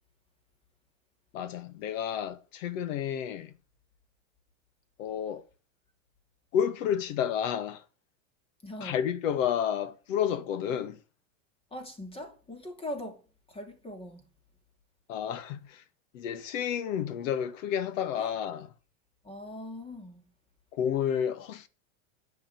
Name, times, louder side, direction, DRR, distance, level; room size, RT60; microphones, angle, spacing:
voice 1, 1.3-3.5 5.0-5.4 6.5-7.8 8.8-11.0 15.1-15.8 16.1-18.7 20.7-21.7, left 9 dB, 70° left, 1.7 m, -30 dB
voice 2, 8.6-9.0 11.7-13.2 13.5-14.3 18.2-18.3 19.2-20.3, left 1 dB, 15° left, 2.8 m, -41 dB
10.5 x 6.7 x 8.1 m
supercardioid pair, 140°, 40 cm